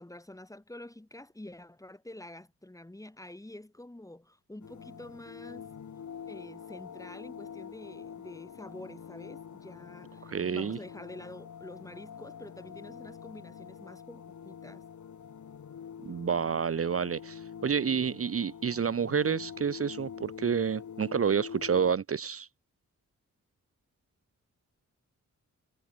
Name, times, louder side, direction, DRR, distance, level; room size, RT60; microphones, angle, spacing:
voice 1, 0.0-5.7 6.3-14.8, left 1 dB, 10° left, 2.3 m, -47 dB
sound 1, 4.6-21.9, left 7 dB, 70° left, 2.2 m, -45 dB
voice 2, 10.2-10.8 16.0-22.5, right 6 dB, 50° right, 0.9 m, -29 dB
wide cardioid pair, 100°, 31 cm